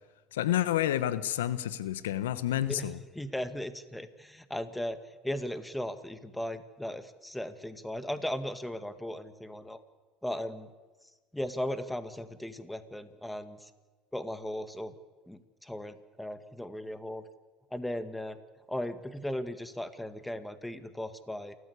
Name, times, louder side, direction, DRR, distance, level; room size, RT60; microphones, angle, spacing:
voice 1, 0.3-3.0, left 12 dB, 85° left, 15 dB, 1.1 m, -29 dB
voice 2, 3.1-9.8 10.2-10.7 11.3-13.7 14.1-14.9 15.3-17.2 17.7-18.4 18.7-21.6, left 1 dB, 5° left, 11 dB, 1.9 m, -37 dB
28.5 x 14.5 x 8.3 m, 1.3 s
hypercardioid pair, 85°, 0 cm